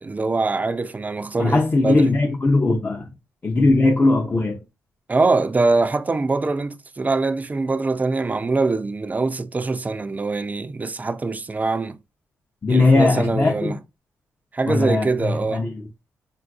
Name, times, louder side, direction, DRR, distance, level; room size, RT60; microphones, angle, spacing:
voice 1, 0.0-2.1 5.1-12.0 12.7-13.8 14.5-15.6, right 3 dB, 25° right, 0.3 m, -23 dB
voice 2, 1.4-3.1 3.4-4.6 12.6-13.8 14.7-15.7, left 2 dB, 30° left, 0.5 m, -19 dB
3.8 x 2.3 x 2.4 m
supercardioid pair, 60°, 6 cm